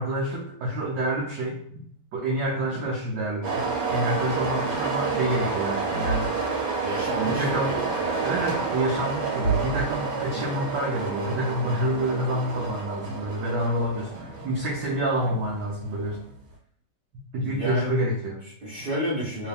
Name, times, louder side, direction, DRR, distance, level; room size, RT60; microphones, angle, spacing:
voice 1, 0.0-1.8 2.1-6.4 7.3-7.7 8.2-16.2 17.3-18.4, right 1 dB, 65° right, -3 dB, 1.3 m, -28 dB
sound 1, 3.4-16.1, right 4 dB, 85° right, 2.0 m, -29 dB
voice 2, 6.8-8.3 17.4-17.9 18.6-19.5, right 1 dB, 40° right, -8 dB, 0.7 m, -31 dB
3.5 x 3.1 x 3.4 m, 0.62 s
omnidirectional pair, 2.4 m